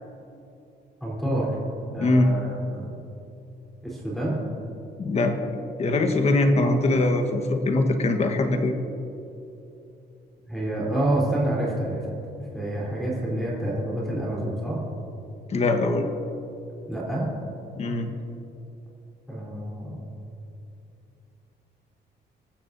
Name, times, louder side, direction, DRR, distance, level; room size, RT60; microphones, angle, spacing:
voice 1, 1.0-1.6 1.9-2.9 3.8-4.4 10.5-12.0 12.5-14.8 16.9-17.3 19.3-20.0, right 1 dB, ahead, -8 dB, 3.6 m, -28 dB
voice 2, 2.0-2.3 5.0-8.8 15.5-16.1 17.8-18.1, left 2 dB, 35° left, 5 dB, 1.3 m, -22 dB
26.0 x 14.5 x 2.7 m, 2.8 s
cardioid pair, 170°, 19 cm